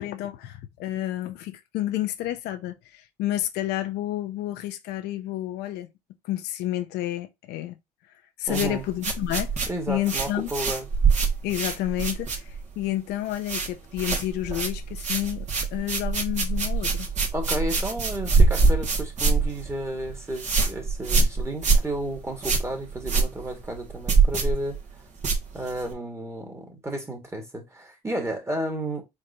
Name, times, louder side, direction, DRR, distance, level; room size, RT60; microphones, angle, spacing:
voice 1, 0.0-5.9 6.2-7.8 8.4-10.5 11.4-17.1, left 14 dB, 75° left, 0.7 m, -30 dB
voice 2, 8.5-8.8 9.7-10.9 17.3-24.8 25.5-29.0, right 1 dB, 15° right, 2.0 m, -32 dB
sound 1, 8.5-12.8 13.1-13.7 14.0-25.9, right 4 dB, 45° right, 1.9 m, -24 dB
4.6 x 3.8 x 2.8 m
supercardioid pair, 85°, 17 cm